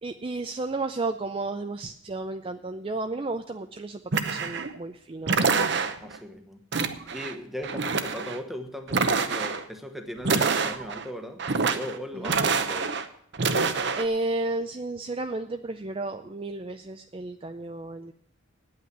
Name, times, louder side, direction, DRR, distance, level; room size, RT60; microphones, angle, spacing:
voice 1, 0.0-5.4 12.1-12.4 14.0-18.1, right 2 dB, 25° right, 7 dB, 0.4 m, -32 dB
sound 1, 4.1-4.8 5.3-6.2 6.7-7.3 7.6-8.4 8.9-9.6 10.2-11.0 11.4-12.0 12.2-13.1 13.3-14.1, right 4 dB, 55° right, 0.8 m, -26 dB
voice 2, 6.0-6.6 7.1-11.4 11.7-13.0, equal, ahead, 6 dB, 1.1 m, -38 dB
9.5 x 8.5 x 8.0 m, 0.68 s
head